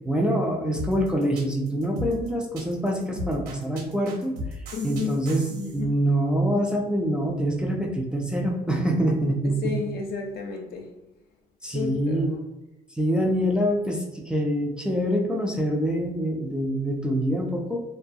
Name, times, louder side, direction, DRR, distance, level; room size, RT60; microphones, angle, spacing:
voice 1, 0.1-5.4 5.7-9.7 11.6-12.4 13.0-17.8, equal, 5° right, 1 dB, 0.3 m, -25 dB
sound 1, 0.8-5.8, left 1 dB, 75° right, 0.8 m, -36 dB
voice 2, 4.7-5.2 5.5-6.0 9.6-10.9 11.7-12.4, left 5 dB, 65° left, 3 dB, 0.6 m, -32 dB
2.4 x 2.2 x 2.6 m, 1.0 s
cardioid pair, 110°, 17 cm